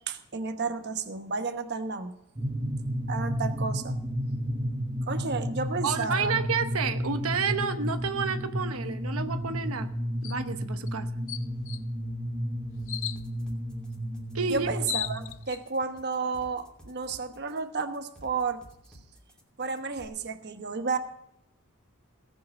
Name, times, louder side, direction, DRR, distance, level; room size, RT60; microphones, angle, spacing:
voice 1, 0.1-2.1 3.1-4.0 5.1-6.4 14.5-18.6 19.6-21.0, right 4 dB, 50° right, 7 dB, 1.1 m, -32 dB
sound 1, 2.4-15.3, equal, 20° right, 0.9 m, -32 dB
voice 2, 5.8-9.9 10.2-11.1 14.3-14.7, right 5 dB, 85° right, 7 dB, 1.0 m, -30 dB
sound 2, 10.2-10.4 10.9-11.0 11.3-11.8 12.9-13.2 14.4-14.5 14.6-15.6, left 13 dB, 65° left, 0.5 m, -35 dB
sound 3, 12.8-20.1, equal, 5° left, 2.7 m, -53 dB
18.0 x 7.6 x 5.4 m, 0.78 s
head